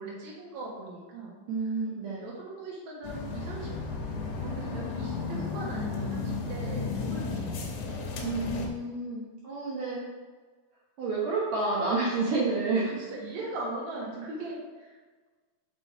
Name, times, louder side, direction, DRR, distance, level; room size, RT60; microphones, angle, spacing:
voice 1, 0.0-1.3 1.6-1.7 2.2-3.7 4.4-8.1 12.8-15.0, right 2 dB, 55° right, -4 dB, 2.5 m, -40 dB
voice 2, 1.5-2.3 8.2-10.0 11.0-12.8, right 3 dB, 75° right, -5 dB, 1.5 m, -29 dB
sound 1, 3.0-8.7, left 4 dB, 70° left, 2.2 m, -33 dB
5.9 x 5.6 x 4.6 m, 1.4 s
omnidirectional pair, 4.5 m